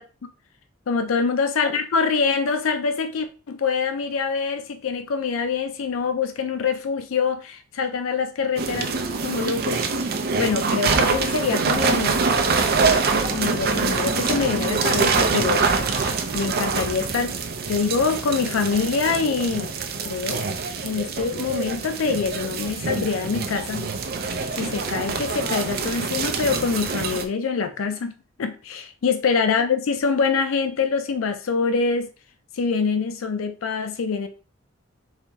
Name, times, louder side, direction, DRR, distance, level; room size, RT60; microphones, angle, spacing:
voice 1, 0.9-8.9 9.2-9.8 10.3-12.2 13.3-15.6 16.3-17.3 17.7-19.7 20.0-20.4 20.8-23.9 24.5-28.1 28.4-32.1 32.5-34.3, left 5 dB, 75° left, 0.4 m, -25 dB
sound 1, 8.6-27.2, right 4 dB, 50° right, 0.5 m, -25 dB
4.1 x 2.9 x 3.5 m
head